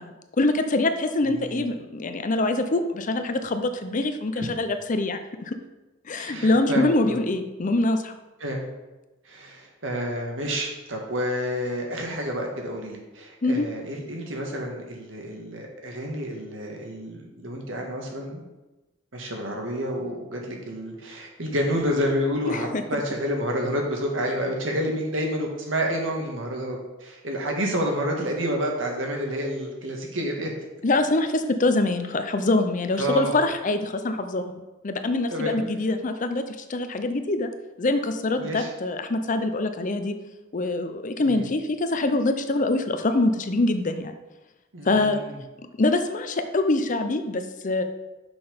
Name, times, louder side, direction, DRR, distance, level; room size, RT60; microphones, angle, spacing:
voice 1, 0.0-5.6 6.1-8.1 13.4-13.7 22.5-22.8 30.8-37.5 37.8-40.1 40.5-44.1 44.8-45.2 45.8-47.8, left 2 dB, 40° left, 8 dB, 0.6 m, -24 dB
voice 2, 1.2-1.7 4.4-4.5 6.1-7.2 8.4-8.7 9.2-18.4 19.1-30.5 33.0-33.4 35.3-35.6 38.4-38.7 41.2-41.4 44.7-45.4, equal, 85° right, 0 dB, 1.7 m, -29 dB
6.1 x 5.8 x 5.1 m, 1.1 s
head